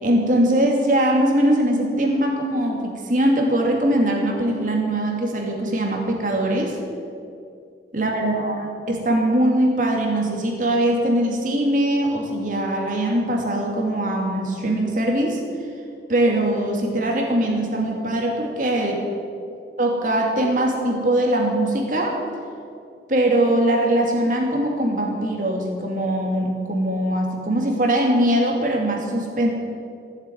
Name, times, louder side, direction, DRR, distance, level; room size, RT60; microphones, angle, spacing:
voice 1, 0.0-6.8 7.9-15.4 16.1-19.0 19.8-22.2 23.1-29.5, right 1 dB, 45° right, 1 dB, 2.5 m, -21 dB
15.5 x 7.9 x 9.4 m, 2.5 s
head